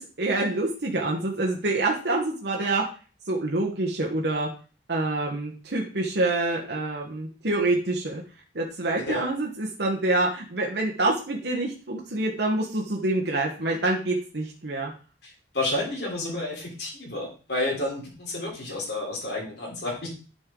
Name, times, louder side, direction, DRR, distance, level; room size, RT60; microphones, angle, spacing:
voice 1, 0.0-2.8 3.2-4.5 4.9-8.2 8.5-14.9, right 2 dB, 65° right, -1 dB, 1.1 m, -26 dB
voice 2, 15.2-20.1, left 2 dB, 65° left, -3 dB, 3.5 m, -30 dB
10.0 x 5.3 x 3.7 m, 0.37 s
head